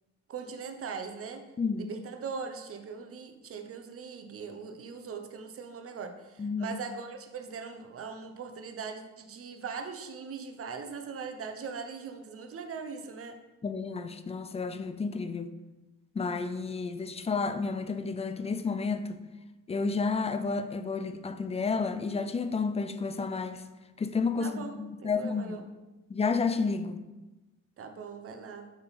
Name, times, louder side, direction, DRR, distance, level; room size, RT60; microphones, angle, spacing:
voice 1, 0.3-1.4 1.8-13.4 24.4-25.6 27.8-28.7, right 5 dB, 50° right, 0.8 m, -40 dB
voice 2, 1.6-1.9 6.4-6.8 13.6-15.5 16.2-19.2 19.7-23.6 24.0-25.6 26.1-27.0, left 4 dB, 20° left, 0.4 m, -31 dB
7.0 x 3.7 x 4.1 m
cardioid pair, 90°, 30 cm